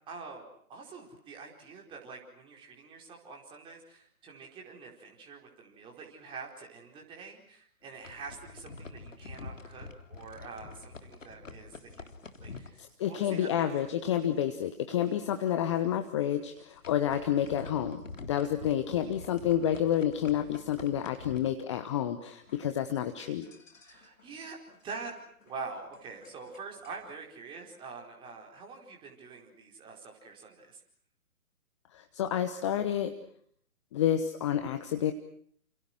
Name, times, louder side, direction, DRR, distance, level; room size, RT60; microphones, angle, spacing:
voice 1, 0.1-12.1 12.4-12.8 13.1-13.8 23.8-24.6 24.8-25.1 25.4-30.8, right 4 dB, 10° right, 0 dB, 4.7 m, -45 dB
sound 1, 7.8-14.1 14.4-14.7 15.0-15.1 15.6-15.8 16.4-22.2 22.5-27.1, left 4 dB, 60° left, 3.5 m, -48 dB
voice 2, 12.8-18.0 18.3-23.5 31.9-33.1 33.9-35.1, left 10 dB, 20° left, 8 dB, 1.2 m, -29 dB
30.0 x 28.5 x 6.2 m, 0.62 s
figure-of-eight pair, 135°, 43 cm